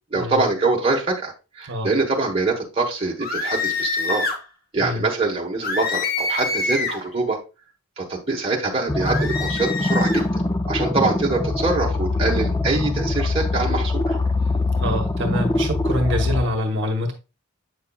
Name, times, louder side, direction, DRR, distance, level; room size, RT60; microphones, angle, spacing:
voice 1, 0.1-4.4 4.7-7.4 8.0-10.3 10.7-14.2, right 3 dB, 25° right, -2 dB, 1.1 m, -24 dB
sound 1, 3.2-4.4 5.6-7.1 9.0-10.2, left 4 dB, 40° left, 1.0 m, -26 dB
sound 2, 8.9-16.4, left 2 dB, 15° left, 0.4 m, -23 dB
voice 2, 14.8-17.1, equal, 55° right, 3 dB, 1.1 m, -25 dB
8.1 x 5.6 x 2.3 m, 0.30 s
head